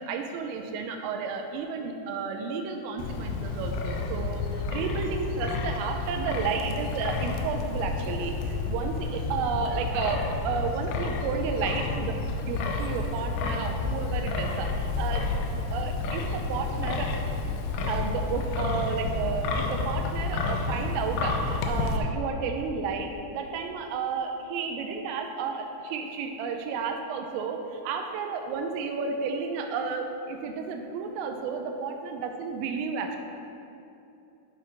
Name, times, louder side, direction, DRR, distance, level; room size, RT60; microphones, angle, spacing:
voice 1, 0.1-12.2 12.5-15.2 15.7-17.1 17.7-33.2, right 5 dB, 85° right, 4 dB, 3.1 m, -32 dB
Wind, 3.0-22.0, left 3 dB, 90° left, 2.6 m, -30 dB
10.5 x 4.4 x 5.0 m, 2.7 s
omnidirectional pair, 5.8 m